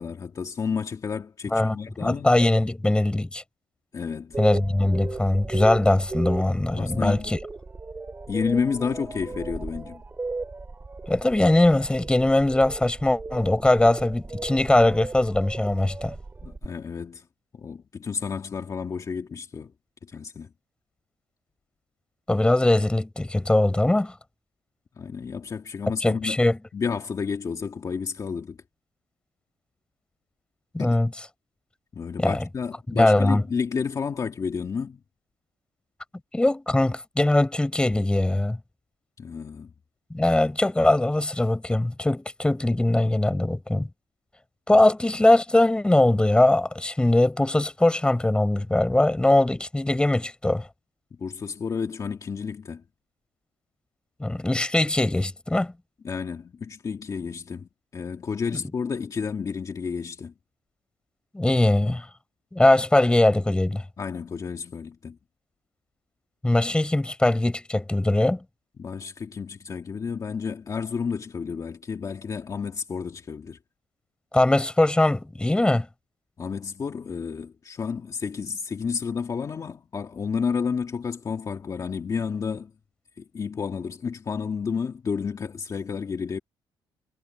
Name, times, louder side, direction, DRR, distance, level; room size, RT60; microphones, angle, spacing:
voice 1, 0.0-2.3 3.9-4.4 6.7-7.4 8.3-10.0 16.4-17.3 17.5-19.7 20.0-20.5 25.0-26.4 26.7-28.6 30.8-31.0 31.9-35.0 39.2-39.7 44.7-44.8 51.2-52.8 56.0-60.3 64.0-65.2 68.8-73.6 76.4-82.7 83.2-86.4, left 6 dB, 40° left, 2.1 m, -31 dB
voice 2, 2.0-3.4 4.4-7.4 11.1-16.1 22.3-24.1 26.0-26.6 30.7-31.1 32.2-32.4 32.9-33.4 36.3-38.6 40.1-43.9 44.7-50.7 54.2-55.7 61.3-62.1 62.5-63.8 66.4-68.4 74.3-75.9, left 1 dB, 10° left, 4.3 m, -21 dB
sound 1, 4.3-16.7, right 3 dB, 20° right, 2.6 m, -36 dB
cardioid pair, 130°, 9 cm